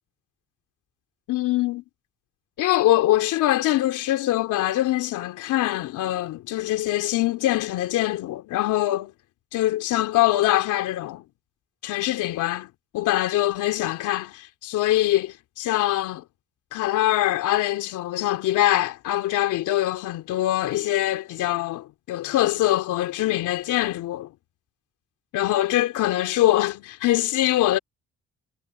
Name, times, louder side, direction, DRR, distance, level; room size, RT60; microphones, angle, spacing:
voice 1, 1.3-1.8 2.6-9.1 9.5-11.2 11.8-12.7 12.9-16.2 16.7-24.3 25.3-27.8, left 15 dB, 85° left, 3.3 m, -23 dB
hypercardioid pair, 45°, 30 cm